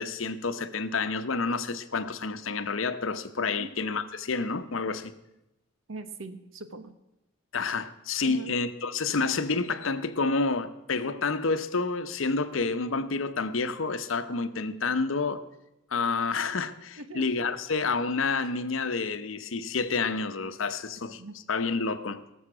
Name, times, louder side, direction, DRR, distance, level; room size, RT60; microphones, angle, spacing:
voice 1, 0.0-5.1 7.5-15.4 15.9-21.2 21.5-22.2, left 4 dB, 80° left, 0.8 m, -29 dB
voice 2, 5.9-6.9 8.2-8.5 17.0-17.5 21.2-21.3, right 2 dB, 85° right, 1.1 m, -41 dB
17.5 x 7.1 x 6.1 m
head